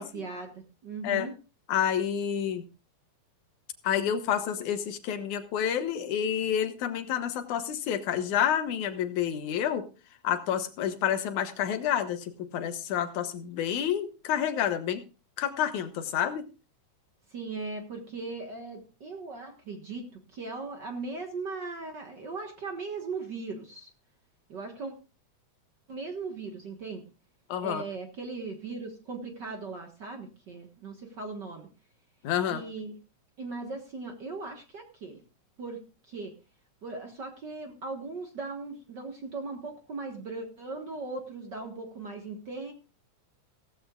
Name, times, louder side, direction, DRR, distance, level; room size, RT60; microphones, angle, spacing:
voice 1, 0.0-1.3 17.3-20.0 20.3-23.9 24.5-24.9 25.9-27.1 27.6-31.7 32.5-32.9 33.4-35.2 35.6-36.3 36.8-42.7, right 3 dB, 45° right, 3 dB, 1.6 m, -38 dB
voice 2, 1.7-2.6 3.8-9.8 10.2-15.0 15.4-16.5 27.5-27.8 32.2-32.6, left 9 dB, 75° left, 8 dB, 2.6 m, -29 dB
16.5 x 15.0 x 2.4 m, 0.32 s
omnidirectional pair, 3.5 m